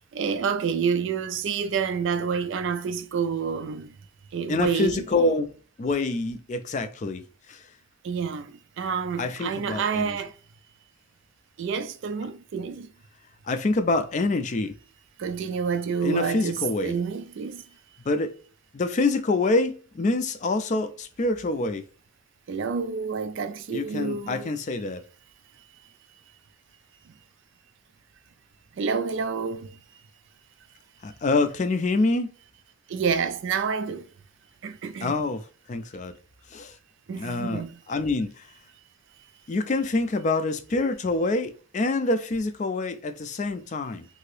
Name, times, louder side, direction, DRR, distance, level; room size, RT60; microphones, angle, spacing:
voice 1, 0.1-3.9 4.3-5.1 8.0-10.3 11.6-12.9 15.2-17.6 22.5-24.5 28.8-29.7 32.9-34.1 34.6-35.2 37.1-37.8, right 6 dB, 55° right, 0.3 m, -28 dB
voice 2, 4.5-7.6 9.2-10.2 13.5-14.7 16.0-17.0 18.1-18.3 18.7-21.8 23.7-25.0 31.0-32.3 35.0-36.2 36.5-36.7 37.1-38.5 39.5-44.1, left 3 dB, 35° left, 0.3 m, -26 dB
2.8 x 2.7 x 3.1 m
head